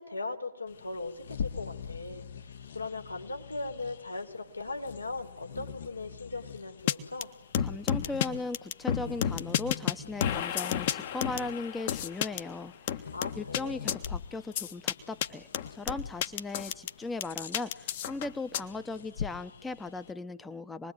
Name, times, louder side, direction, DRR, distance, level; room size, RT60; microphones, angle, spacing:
voice 1, 0.0-7.3 13.1-13.8, left 3 dB, 80° left, 4 dB, 5.1 m, -39 dB
Bird vocalization bird call bird song, 0.7-20.1, left 7 dB, 55° left, 1.7 m, -44 dB
sound 1, 6.9-7.0 7.2-7.3 7.5-8.3 8.5-9.9 10.2-12.4 12.9-13.6 13.9-14.1 14.5-14.9 15.2-15.3 15.5-16.9 17.2-18.6, left 10 dB, 40° left, 1.6 m, -30 dB
voice 2, 7.6-13.1 13.3-20.9, left 3 dB, 10° left, 12 dB, 1.0 m, -38 dB
27.5 x 21.5 x 9.5 m, 0.82 s
figure-of-eight pair, 125°, 0 cm